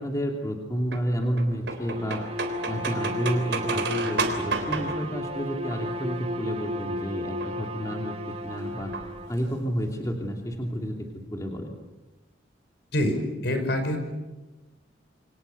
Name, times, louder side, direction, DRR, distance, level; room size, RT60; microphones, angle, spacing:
voice 1, 0.0-2.2 2.6-8.1 8.4-8.9 9.3-11.7, equal, 20° left, 1 dB, 2.8 m, -30 dB
sound 1, 0.9-6.2 7.2-7.7 8.9-9.6 9.9-10.0 10.2-10.3 10.5-10.9, right 4 dB, 70° right, 3.7 m, -32 dB
Bowed string instrument, 1.8-9.4, equal, 35° right, 1.5 m, -34 dB
voice 2, 12.9-14.0, left 1 dB, 65° left, 6 dB, 5.6 m, -26 dB
28.0 x 25.5 x 7.0 m, 1.2 s
head